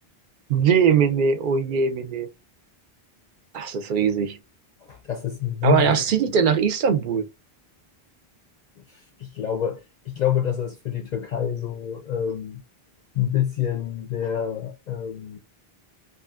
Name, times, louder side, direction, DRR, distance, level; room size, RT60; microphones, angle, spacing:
voice 1, 0.5-2.3 3.5-4.4 5.6-7.3, right 6 dB, 60° right, 0.7 m, -21 dB
voice 2, 4.8-6.0 8.9-12.6 13.1-15.4, left 10 dB, 55° left, 0.5 m, -27 dB
2.7 x 2.4 x 2.4 m
omnidirectional pair, 1.0 m